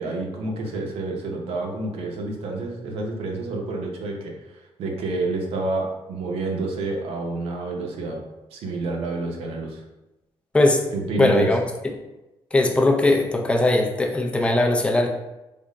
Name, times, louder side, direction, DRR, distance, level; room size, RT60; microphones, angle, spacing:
voice 1, 0.0-8.2 8.5-9.8 10.9-11.5, right 2 dB, 90° right, 1 dB, 0.7 m, -28 dB
voice 2, 11.2-11.6 12.5-15.1, left 2 dB, 10° left, 1 dB, 0.4 m, -19 dB
3.4 x 2.1 x 3.7 m, 1.0 s
cardioid pair, 145°, 10 cm